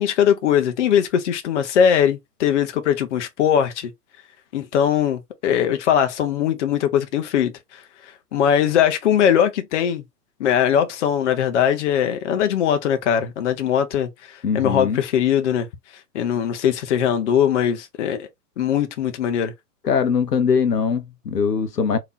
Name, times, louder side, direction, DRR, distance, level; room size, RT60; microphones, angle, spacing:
voice 1, 0.0-3.9 4.5-10.0 10.4-15.7 16.1-18.3 18.6-19.5, left 9 dB, 45° left, 0.8 m, -20 dB
voice 2, 14.4-15.0 19.8-22.0, left 6 dB, 75° left, 0.9 m, -21 dB
3.4 x 2.9 x 2.6 m
figure-of-eight pair, 120°, 48 cm